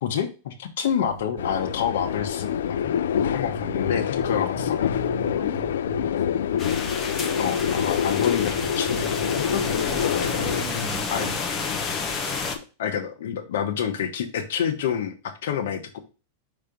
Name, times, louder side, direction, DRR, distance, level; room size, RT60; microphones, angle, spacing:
voice 1, 0.0-2.9 3.2-4.8 7.4-9.1 9.5-9.6 10.7-11.3 12.8-15.1 15.4-16.0, left 8 dB, 75° left, 6 dB, 1.1 m, -28 dB
sound 1, 1.0-2.2 2.5-2.7 3.2-6.0 6.4-7.5 7.9-8.0 8.5-11.4, right 6 dB, 60° right, 1.6 m, -39 dB
sound 2, 1.4-10.6, left 8 dB, 90° left, 0.4 m, -26 dB
voice 2, 5.4-6.4 9.4-9.9 10.3-11.6, right 2 dB, 5° right, -1 dB, 1.6 m, -42 dB
sound 3, 6.6-12.6, left 5 dB, 20° left, 0.9 m, -30 dB
5.7 x 3.4 x 5.1 m, 0.32 s
supercardioid pair, 160°, 0 cm